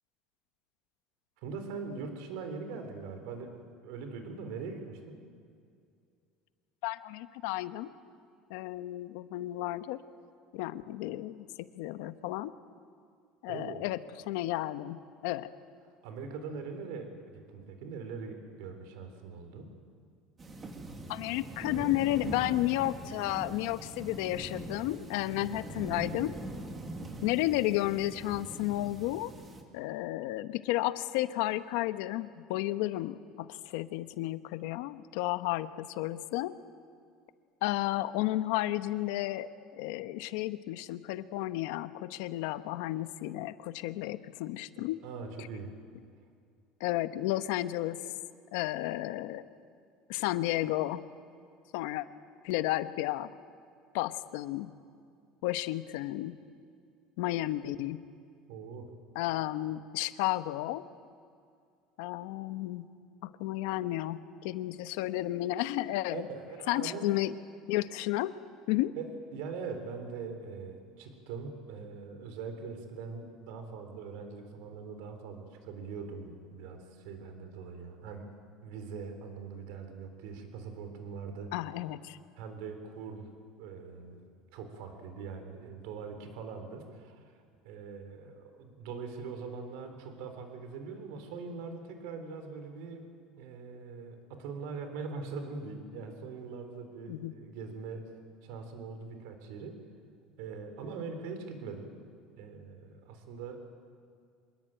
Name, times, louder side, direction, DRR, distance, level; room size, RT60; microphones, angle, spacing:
voice 1, 1.4-5.2 13.5-13.9 16.0-19.7 44.8-45.7 58.5-58.9 66.1-67.2 68.9-78.3 78.6-81.5 82.4-87.3 87.6-93.1 93.4-98.1 98.4-99.8 100.4-102.0 102.4-103.6, right 5 dB, 70° right, 7 dB, 3.9 m, -42 dB
voice 2, 6.8-7.9 8.5-10.0 10.5-12.5 13.4-15.5 21.1-26.4 27.2-29.3 29.7-36.5 37.6-45.0 46.8-48.0 48.5-49.5 50.1-51.0 51.7-52.1 52.4-53.3 53.9-54.7 55.4-56.4 57.2-58.0 59.1-60.8 62.0-62.9 63.2-66.2 66.7-67.3 67.7-68.3 68.7-69.0 81.5-82.2 97.1-97.3, left 16 dB, 80° left, 12 dB, 1.0 m, -32 dB
sound 1, 20.4-29.6, right 2 dB, 20° right, 2.1 m, -42 dB
26.0 x 21.5 x 9.0 m, 2.3 s
cardioid pair, 175°, 0 cm